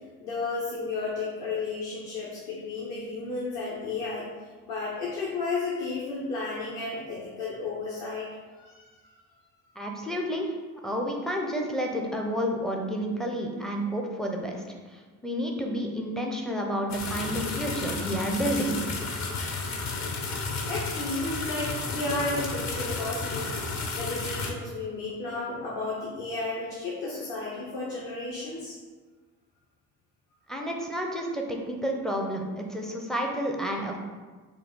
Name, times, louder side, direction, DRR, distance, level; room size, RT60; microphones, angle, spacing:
voice 1, 0.2-8.3 8.5-9.1 20.6-23.6 23.9-28.8, left 3 dB, 60° left, -6 dB, 1.1 m, -33 dB
voice 2, 9.8-10.5 10.8-18.8 30.5-34.0, equal, ahead, 1 dB, 0.4 m, -30 dB
sound 1, 16.9-24.5, left 3 dB, 35° left, 0.7 m, -32 dB
5.1 x 2.2 x 3.6 m, 1.4 s
figure-of-eight pair, 55°, 48 cm